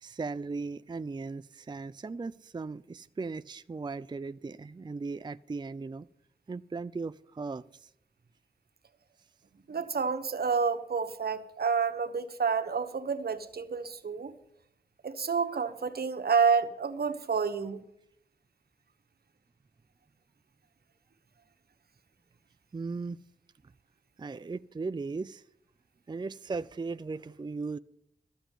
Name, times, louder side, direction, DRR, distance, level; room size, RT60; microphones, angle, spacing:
voice 1, 0.0-6.1 6.5-7.9 22.7-23.2 24.2-25.4 26.1-27.8, right 4 dB, 25° right, 0.4 m, -37 dB
voice 2, 9.7-14.3 15.0-17.8, right 5 dB, 75° right, 1.1 m, -29 dB
13.5 x 7.0 x 9.1 m
cardioid pair, 45°, 16 cm